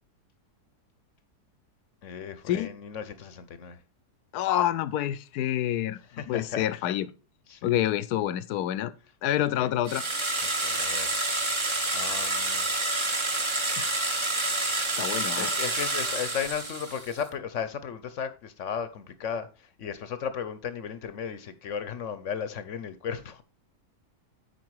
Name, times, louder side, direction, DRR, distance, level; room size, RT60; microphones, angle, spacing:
voice 1, 2.0-3.8 6.1-6.6 7.5-7.7 9.6-9.7 10.4-11.3 11.9-12.7 15.4-19.5 19.8-23.4, left 7 dB, 60° left, 1.0 m, -35 dB
voice 2, 4.3-7.1 7.6-8.9 9.2-10.0 13.8-13.9 15.0-15.5, left 12 dB, 80° left, 1.2 m, -27 dB
sound 1, 9.9-17.2, right 2 dB, 20° right, 0.9 m, -28 dB
9.6 x 4.6 x 4.7 m
omnidirectional pair, 1.6 m